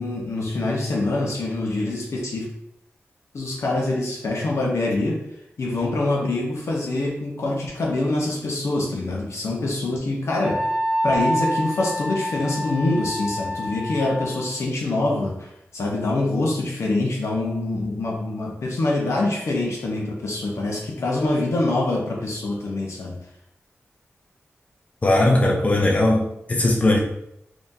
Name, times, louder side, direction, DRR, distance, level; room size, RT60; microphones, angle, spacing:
voice 1, 0.0-2.5 3.3-5.2 5.6-10.6 11.0-23.2, left 2 dB, 85° left, -1 dB, 0.9 m, -25 dB
Wind instrument woodwind instrument, 10.4-14.5, equal, 5° right, 1.0 m, -27 dB
voice 2, 25.0-27.0, left 1 dB, 30° left, 0 dB, 0.5 m, -19 dB
3.8 x 3.0 x 2.7 m, 0.77 s
wide cardioid pair, 125°, 5 cm